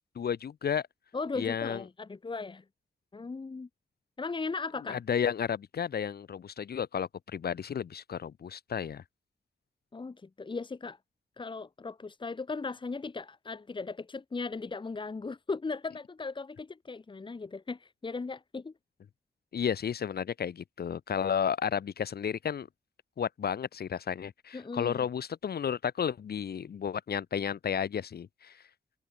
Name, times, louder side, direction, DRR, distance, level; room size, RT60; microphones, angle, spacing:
voice 1, 0.1-0.8 1.3-1.8 4.9-9.0 19.5-22.7 23.2-28.6, left 8 dB, 70° left, 4.8 m, -32 dB
voice 2, 1.1-2.6 3.1-3.7 4.2-5.0 9.9-11.0 11.4-18.7 24.5-25.0, left 4 dB, 30° left, 1.9 m, -37 dB
wide cardioid pair, 115°, 17 cm